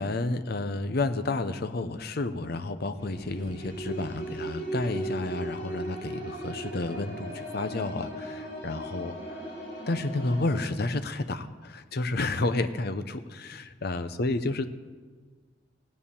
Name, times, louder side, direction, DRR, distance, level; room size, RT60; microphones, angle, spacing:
voice 1, 0.0-9.2 9.9-14.7, left 2 dB, 55° left, 11 dB, 0.8 m, -31 dB
sound 1, 3.0-10.6, right 1 dB, 40° left, 4.3 m, -37 dB
16.0 x 9.3 x 7.1 m, 1.5 s
head